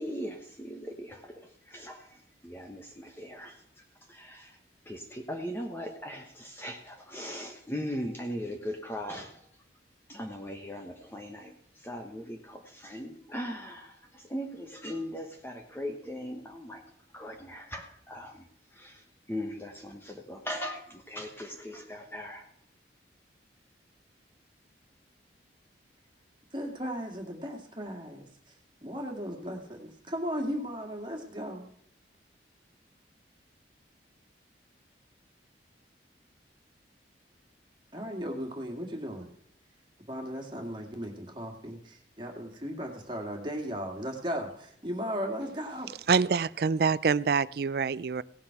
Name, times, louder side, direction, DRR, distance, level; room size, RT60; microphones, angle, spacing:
voice 1, 0.0-3.6 4.1-4.6 4.9-9.4 10.1-16.8 17.1-22.4, equal, 10° left, 2 dB, 1.1 m, -39 dB
voice 2, 26.5-28.5 28.8-31.7 37.9-39.3 40.1-45.9, equal, 25° right, 2 dB, 2.1 m, -36 dB
voice 3, 46.1-48.2, right 5 dB, 55° right, 19 dB, 0.4 m, -26 dB
17.0 x 7.5 x 5.8 m, 0.72 s
head